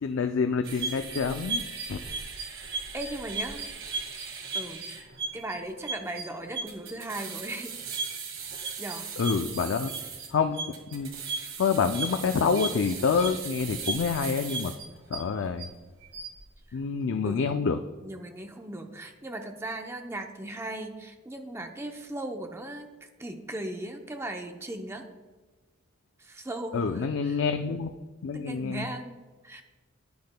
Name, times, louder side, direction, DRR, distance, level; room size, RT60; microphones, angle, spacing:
voice 1, 0.0-1.6 1.9-2.0 9.2-9.9 10.3-11.1 11.6-14.7 15.1-15.7 16.7-17.8 26.7-27.9 28.2-28.9, left 5 dB, 65° left, 7 dB, 0.4 m, -27 dB
sound 1, 0.6-15.6 16.0-16.4, right 4 dB, 65° right, 1.6 m, -36 dB
voice 2, 2.7-3.7 4.5-5.1 5.3-7.7 8.8-9.1 16.7-16.8 17.2-17.5 18.0-22.9 23.2-25.1 26.2-27.4 28.3-29.6, right 1 dB, 10° right, 4 dB, 0.6 m, -38 dB
10.5 x 9.5 x 2.2 m, 1.3 s
head